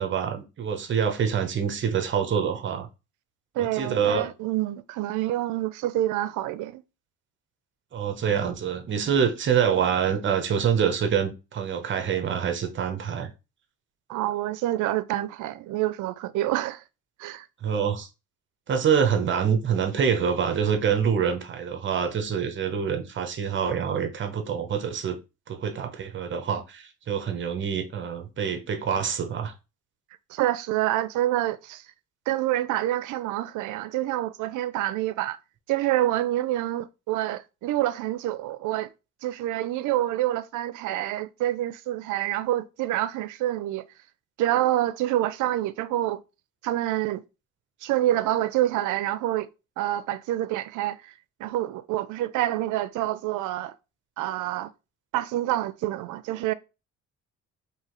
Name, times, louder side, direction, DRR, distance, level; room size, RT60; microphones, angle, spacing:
voice 1, 0.0-2.9 3.6-4.3 7.9-13.3 17.6-18.1 18.7-25.2 25.5-29.5, right 7 dB, 40° right, 0.7 m, -26 dB
voice 2, 3.5-6.8 14.1-16.8 17.2-17.5 30.3-31.8 32.3-35.4 35.7-38.9 39.2-43.8 44.4-46.2 46.6-47.2 47.8-49.5 49.8-51.1 51.4-53.7 54.2-54.7 55.1-56.5, right 14 dB, 75° right, 0.5 m, -27 dB
4.8 x 2.7 x 3.0 m
cardioid pair, 145°, 31 cm